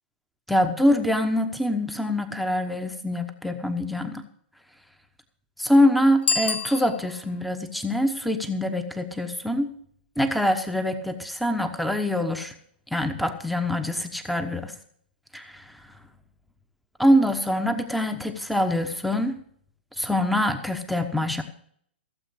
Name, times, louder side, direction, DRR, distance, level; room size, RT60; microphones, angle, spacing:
voice 1, 0.5-4.2 5.6-9.7 10.2-12.5 12.9-14.7 15.3-15.6 17.0-19.4 20.0-21.4, left 1 dB, ahead, 8 dB, 1.1 m, -24 dB
Bicycle bell, 6.2-7.4, left 4 dB, 75° left, 1.2 m, -28 dB
16.0 x 7.6 x 6.4 m, 0.63 s
hypercardioid pair, 120°, 6 cm